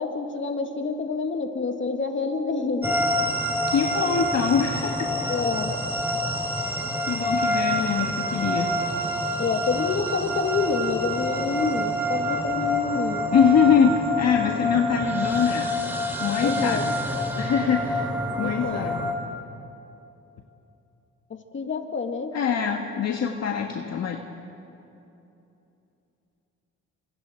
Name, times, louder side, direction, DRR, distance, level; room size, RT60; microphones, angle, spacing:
voice 1, 0.0-2.9 5.3-5.7 9.4-13.3 16.4-16.8 18.4-18.8 21.5-22.3, left 4 dB, 40° left, 4 dB, 2.2 m, -27 dB
sound 1, 2.8-19.1, equal, 5° right, 3.0 m, -27 dB
voice 2, 3.7-5.3 7.1-8.7 13.3-15.7 16.2-17.0 17.4-18.1 18.4-19.1 22.3-24.2, left 7 dB, 60° left, 2 dB, 1.6 m, -23 dB
29.0 x 25.0 x 4.6 m, 2.9 s
cardioid pair, 90°, 30 cm